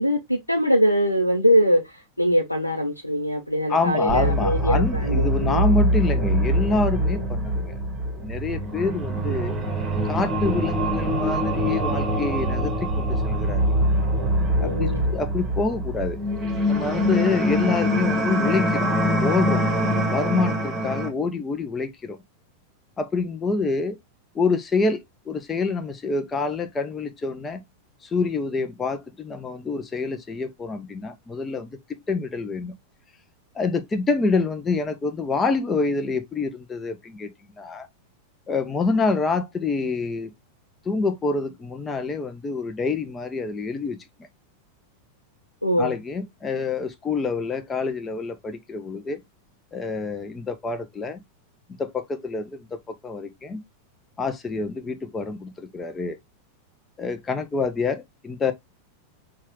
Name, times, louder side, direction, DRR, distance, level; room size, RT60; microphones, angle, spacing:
voice 1, 0.0-5.7 9.3-9.4 14.6-15.2 45.6-46.0, equal, 90° left, 0.6 m, -22 dB
voice 2, 3.7-7.7 8.2-9.6 10.0-13.7 14.6-16.2 16.7-19.6 20.1-22.2 23.0-24.0 24.3-27.6 28.0-32.7 33.5-37.3 37.6-37.9 38.5-40.3 40.8-44.0 45.8-49.2 49.7-51.2 51.8-53.6 54.2-56.2 57.0-58.5, left 4 dB, 15° left, 0.6 m, -27 dB
sound 1, 4.1-21.1, equal, 20° right, 1.3 m, -24 dB
5.7 x 2.4 x 2.9 m
figure-of-eight pair, 90°, 0 cm